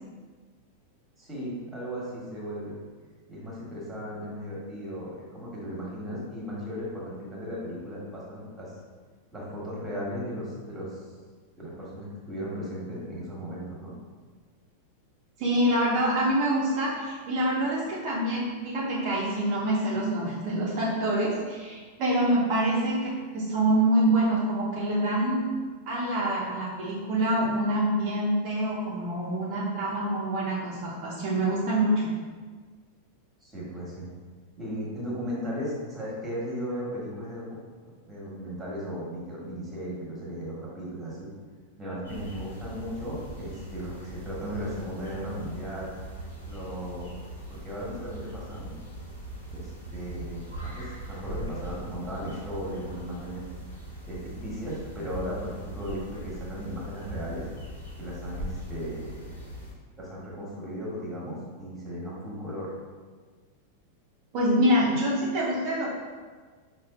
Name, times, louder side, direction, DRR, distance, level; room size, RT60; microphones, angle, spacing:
voice 1, 1.2-2.8 3.3-8.7 9.3-11.0 11.6-13.9 33.4-34.1 34.6-37.4 38.1-41.3 41.8-45.9 46.5-47.1 47.5-48.8 49.5-53.4 54.1-57.4 58.0-59.2 60.0-62.7, equal, 10° right, -6 dB, 1.3 m, -36 dB
voice 2, 15.4-25.5 25.9-32.1 64.3-65.9, right 1 dB, 45° right, -7 dB, 0.7 m, -26 dB
sound 1, 42.0-59.7, right 1 dB, 80° left, 1.0 m, -40 dB
5.4 x 2.4 x 2.4 m, 1.5 s
figure-of-eight pair, 90°, 0 cm